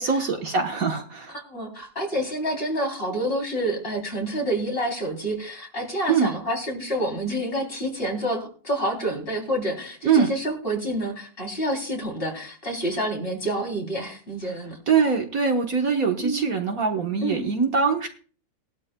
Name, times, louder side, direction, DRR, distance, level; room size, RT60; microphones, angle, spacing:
voice 1, 0.0-1.3 6.1-6.3 10.0-10.3 14.9-18.1, right 5 dB, 55° right, 3 dB, 1.6 m, -23 dB
voice 2, 1.5-14.8 16.2-16.4 17.2-17.4, right 1 dB, 30° left, 1 dB, 3.6 m, -28 dB
19.5 x 12.5 x 2.2 m, 0.41 s
omnidirectional pair, 1.9 m